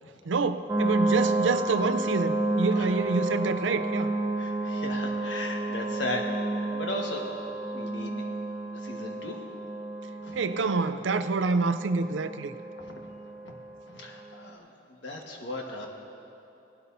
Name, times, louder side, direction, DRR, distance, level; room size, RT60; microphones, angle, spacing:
voice 1, 0.3-4.1 10.3-12.5, right 4 dB, 90° right, 11 dB, 0.5 m, -27 dB
sound 1, 0.7-14.3, right 2 dB, 15° right, 0.7 m, -31 dB
voice 2, 4.3-6.4 6.7-7.2 7.7-8.2 8.7-9.4 10.2-10.4 12.8-13.0 13.4-13.5 13.9-15.9, left 1 dB, 85° left, 0 dB, 1.5 m, -37 dB
18.5 x 12.0 x 2.7 m, 2.9 s
head